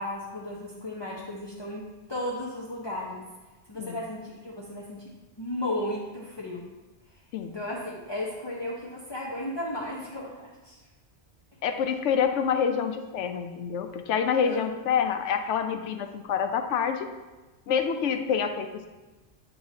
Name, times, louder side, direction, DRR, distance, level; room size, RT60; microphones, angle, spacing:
voice 1, 0.0-3.3 3.7-6.7 7.4-10.8 14.4-14.7, left 1 dB, 25° left, -6 dB, 0.8 m, -35 dB
voice 2, 11.6-17.1 17.7-18.9, left 7 dB, 80° left, 7 dB, 0.9 m, -27 dB
8.8 x 4.8 x 2.8 m, 1.2 s
omnidirectional pair, 1.2 m